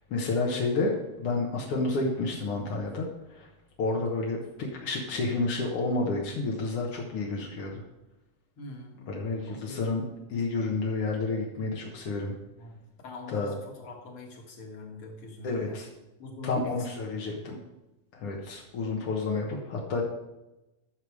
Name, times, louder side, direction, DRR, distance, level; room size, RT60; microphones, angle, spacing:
voice 1, 0.1-3.1 3.3-3.5 3.8-7.8 9.1-12.3 13.3-13.5 15.4-15.9 16.4-17.6 18.1-20.0, left 3 dB, 65° left, -1 dB, 1.5 m, -30 dB
voice 2, 8.6-9.2 9.5-9.8 12.6-12.8 13.0-15.8 16.2-17.6, left 2 dB, 50° left, 1 dB, 2.0 m, -44 dB
12.5 x 6.7 x 4.8 m, 1.0 s
omnidirectional pair, 4.1 m